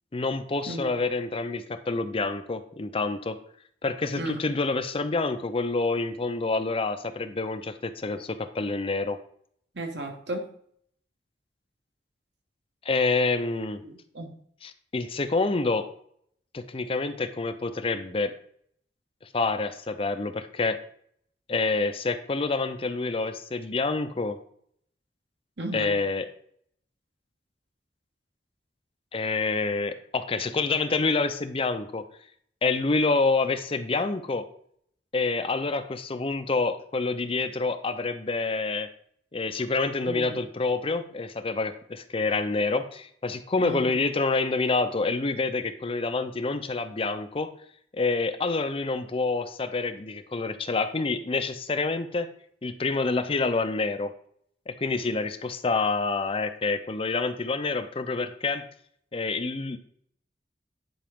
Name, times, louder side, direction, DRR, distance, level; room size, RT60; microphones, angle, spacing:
voice 1, 0.1-3.4 3.8-9.2 12.8-13.8 14.6-15.9 16.5-18.3 19.3-20.8 21.5-24.4 25.7-26.3 29.1-32.1 32.6-34.4 35.1-38.9 39.3-47.5 47.9-52.3 52.6-54.1 54.7-58.6 59.1-59.8, left 3 dB, 30° left, 10 dB, 0.6 m, -27 dB
voice 2, 9.7-10.4 13.8-14.3 25.6-25.9 40.1-40.4 43.6-44.0, right 1 dB, 75° right, 3 dB, 1.5 m, -34 dB
10.0 x 4.9 x 3.6 m, 0.63 s
head